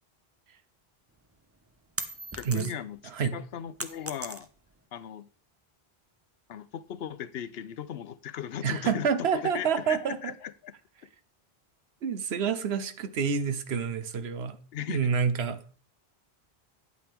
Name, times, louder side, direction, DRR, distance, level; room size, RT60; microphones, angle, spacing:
sound 1, 1.2-3.0 3.3-4.8, right 2 dB, 15° right, 0.5 m, -38 dB
voice 1, 2.3-3.0 3.3-4.5 4.9-5.3 6.5-10.7 14.7-15.1, left 9 dB, 75° left, 0.8 m, -37 dB
voice 2, 3.0-3.4 8.6-10.3 12.0-14.6 14.9-15.6, right 6 dB, 80° right, 1.1 m, -28 dB
9.1 x 8.7 x 3.5 m
omnidirectional pair, 1.1 m